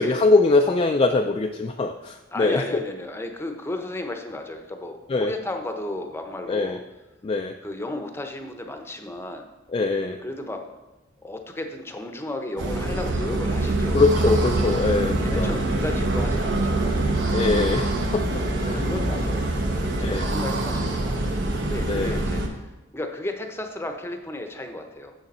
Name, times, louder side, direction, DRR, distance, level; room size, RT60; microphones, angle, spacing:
voice 1, 0.0-2.8 5.1-5.3 6.5-6.8 7.2-7.6 9.7-10.2 13.9-15.6 17.3-18.8 20.0-20.3 21.9-22.2, left 3 dB, 30° left, 5 dB, 0.3 m, -22 dB
voice 2, 2.3-6.8 7.6-9.5 10.2-10.6 11.2-14.1 14.8-16.9 18.3-25.1, left 1 dB, 15° left, 5 dB, 0.7 m, -34 dB
sound 1, 12.6-22.5, right 2 dB, 70° right, 0.9 m, -24 dB
6.9 x 6.7 x 4.1 m, 1.1 s
head